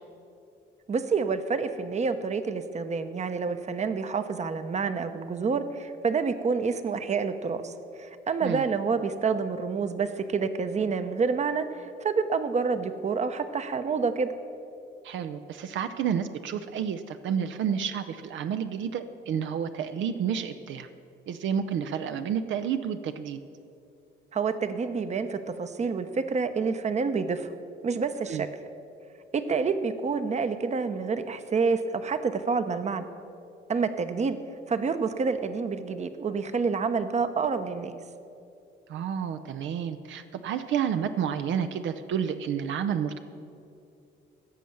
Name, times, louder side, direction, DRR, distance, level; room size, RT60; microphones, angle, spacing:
voice 1, 0.9-14.3 24.3-27.5 27.8-28.5 29.3-33.1 33.7-34.4 34.7-37.9, right 5 dB, 35° right, 10 dB, 0.8 m, -28 dB
voice 2, 15.0-20.9 21.3-23.4 28.3-28.4 38.9-43.2, right 8 dB, 70° right, 9 dB, 0.6 m, -30 dB
16.0 x 6.3 x 7.1 m, 2.6 s
cardioid pair, 90°, 20 cm